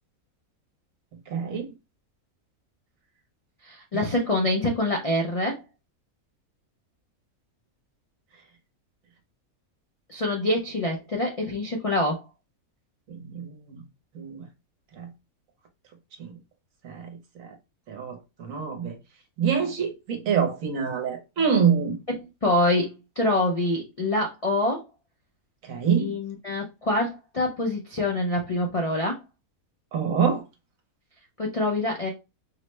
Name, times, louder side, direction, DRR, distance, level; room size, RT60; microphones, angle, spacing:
voice 1, 1.3-1.7 13.1-13.8 14.1-14.5 15.0-15.1 16.2-16.3 16.8-17.5 17.9-19.0 19.4-21.9 25.6-26.1 29.9-30.4, right 7 dB, 70° right, 1.2 m, -26 dB
voice 2, 3.6-5.6 10.1-12.2 22.4-24.8 26.0-29.2 31.4-32.1, left 1 dB, 65° left, 0.3 m, -25 dB
4.7 x 2.1 x 3.1 m
omnidirectional pair, 1.5 m